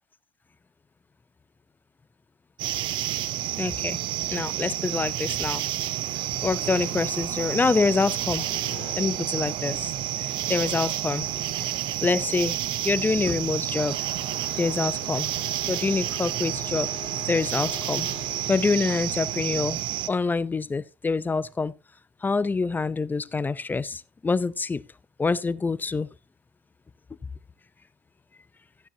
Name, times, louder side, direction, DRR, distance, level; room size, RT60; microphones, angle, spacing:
sound 1, 2.6-20.1, right 14 dB, 65° right, 0.7 m, -30 dB
voice 1, 3.6-4.0 4.3-5.6 6.0-8.5 9.0-9.9 10.2-11.3 11.6-14.0 14.5-15.3 15.7-16.9 17.3-18.1 18.5-19.8 20.1-21.7 22.2-24.8 25.2-26.1, left 4 dB, 20° left, 0.6 m, -26 dB
sound 2, 6.6-19.7, left 10 dB, 75° left, 2.2 m, -46 dB
14.5 x 9.9 x 2.8 m
supercardioid pair, 85°, 9 cm